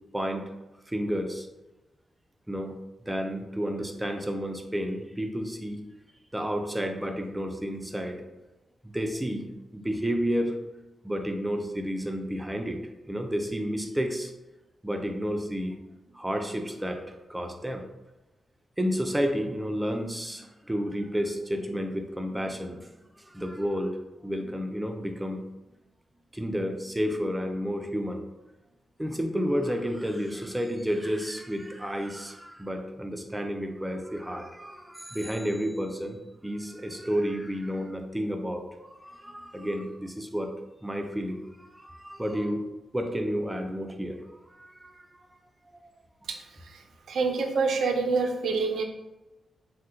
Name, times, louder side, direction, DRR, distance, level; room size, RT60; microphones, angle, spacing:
voice 1, 0.1-0.5 0.9-1.5 2.5-2.8 3.1-5.8 6.3-8.2 8.9-10.6 11.0-12.8 13.1-14.3 14.8-15.8 16.1-17.8 18.8-22.9 23.2-23.9 24.2-25.4 26.3-28.2 29.0-36.2 36.4-40.5 40.8-42.6 42.9-44.2 44.5-45.2 45.7-45.9, equal, 10° right, 4 dB, 0.3 m, -31 dB
voice 2, 46.3-48.8, right 4 dB, 85° right, 4 dB, 0.4 m, -27 dB
2.7 x 2.1 x 3.5 m, 1.0 s
wide cardioid pair, 130°, 0 cm